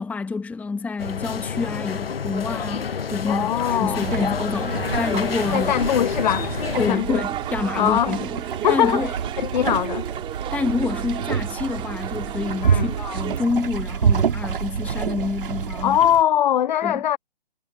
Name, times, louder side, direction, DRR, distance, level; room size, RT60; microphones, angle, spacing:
voice 1, 0.0-5.7 6.8-8.4 8.7-9.1 10.5-16.0 16.8-17.0, left 4 dB, 5° left, 1.5 m, -27 dB
sound 1, 1.0-6.9, left 6 dB, 75° left, 1.2 m, -28 dB
voice 2, 3.3-4.1 5.5-7.2 7.7-8.2 8.6-10.1 12.6-12.9 15.8-17.2, left 10 dB, 50° left, 0.8 m, -22 dB
sound 2, 3.7-16.2, right 7 dB, 65° right, 2.8 m, -28 dB
sound 3, 4.7-13.4, right 12 dB, 15° right, 4.0 m, -34 dB
figure-of-eight pair, 140°, 30 cm